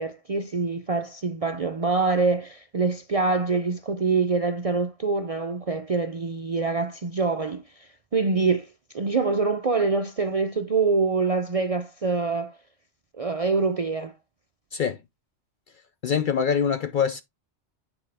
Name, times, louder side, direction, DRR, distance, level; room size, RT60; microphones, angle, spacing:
voice 1, 0.0-8.7 8.9-12.5 13.2-14.1, right 4 dB, 45° right, 0.4 m, -25 dB
voice 2, 16.0-17.2, left 7 dB, 60° left, 0.6 m, -24 dB
8.9 x 4.6 x 3.4 m
omnidirectional pair, 1.3 m